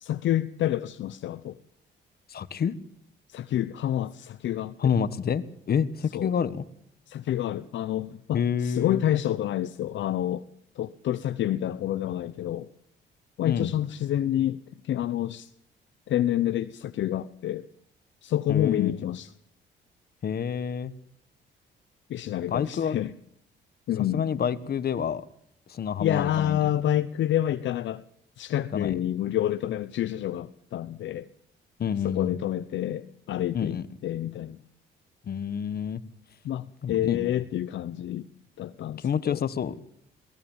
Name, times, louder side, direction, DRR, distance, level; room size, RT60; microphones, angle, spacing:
voice 1, 0.0-1.6 3.3-4.9 6.1-6.3 7.1-10.4 10.8-12.7 13.4-14.6 14.8-15.5 16.1-17.7 18.2-19.3 22.1-23.1 23.9-24.3 26.0-28.0 28.4-31.3 32.0-34.6 36.4-38.3 38.6-39.4, left 12 dB, 70° left, 11 dB, 0.8 m, -28 dB
voice 2, 2.3-2.7 4.8-6.6 8.3-9.0 13.4-13.7 18.5-19.0 20.2-20.9 22.5-23.0 24.1-25.2 25.7-26.6 28.7-29.0 31.8-32.4 33.5-33.9 35.3-36.0 36.8-37.3 39.0-39.7, left 7 dB, 50° left, 15 dB, 1.4 m, -28 dB
22.5 x 18.0 x 7.4 m, 0.68 s
cardioid pair, 90°, 20 cm